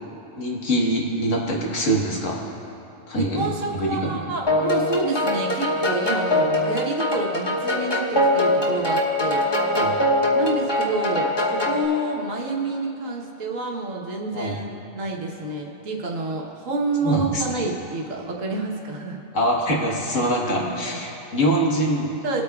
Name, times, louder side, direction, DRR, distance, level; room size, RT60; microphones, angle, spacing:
voice 1, 0.4-2.4 3.1-3.5 3.7-4.0 9.7-9.9 14.3-14.6 17.0-17.4 19.3-22.1, right 1 dB, 70° left, -2 dB, 1.8 m, -23 dB
voice 2, 3.1-9.4 10.3-14.7 14.9-19.2 20.1-21.0 22.2-22.4, right 2 dB, 75° right, -1 dB, 1.5 m, -28 dB
sound 1, 4.5-11.8, left 1 dB, 20° left, 1.0 m, -22 dB
23.5 x 8.4 x 2.4 m, 2.9 s
omnidirectional pair, 1.4 m